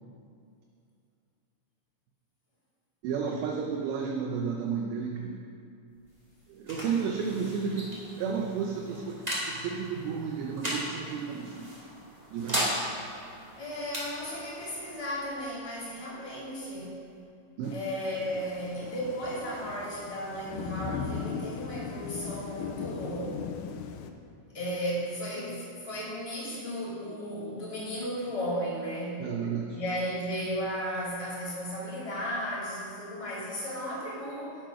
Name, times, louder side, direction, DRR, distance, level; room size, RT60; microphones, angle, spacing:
voice 1, 3.0-5.4 6.5-7.9 8.2-9.2 9.4-11.7 12.3-12.7 17.6-17.8 29.2-29.8, right 6 dB, 80° right, 0 dB, 2.6 m, -32 dB
sound 1, 5.9-17.2, equal, 30° right, 0.7 m, -38 dB
voice 2, 13.5-17.0 17.7-23.4 24.5-29.2 29.7-34.6, equal, 10° left, -9 dB, 1.4 m, -35 dB
Thunder / Rain, 17.7-24.1, left 6 dB, 85° left, 2.8 m, -38 dB
10.0 x 7.5 x 5.8 m, 2.5 s
omnidirectional pair, 5.6 m